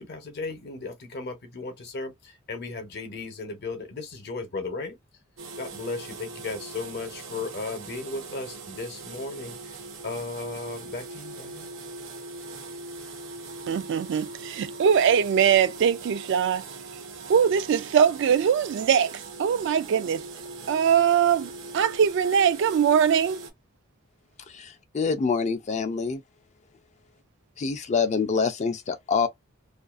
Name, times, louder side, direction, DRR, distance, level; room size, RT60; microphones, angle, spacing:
voice 1, 0.0-5.0 5.6-9.7 10.0-11.7, left 3 dB, 55° left, 0.8 m, -35 dB
sound 1, 5.4-23.5, right 3 dB, 90° right, 0.7 m, -41 dB
voice 2, 13.7-16.6 17.3-20.2 20.7-23.4, right 8 dB, 60° right, 0.3 m, -22 dB
voice 3, 24.5-26.2 27.6-29.3, left 5 dB, 35° left, 0.4 m, -26 dB
2.4 x 2.3 x 2.3 m
head